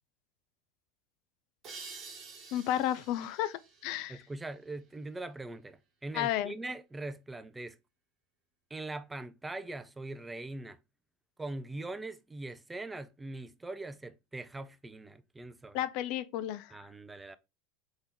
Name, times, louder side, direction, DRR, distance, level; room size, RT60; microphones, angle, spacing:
sound 1, 1.6-5.0, right 4 dB, 35° right, 1.2 m, -50 dB
voice 1, 2.5-4.2 6.1-6.5 15.7-16.8, left 12 dB, 50° left, 0.4 m, -32 dB
voice 2, 4.1-7.8 8.7-10.8 11.4-15.8 16.7-17.4, right 2 dB, 10° right, 0.4 m, -41 dB
3.6 x 3.4 x 2.8 m
figure-of-eight pair, 80°, 0 cm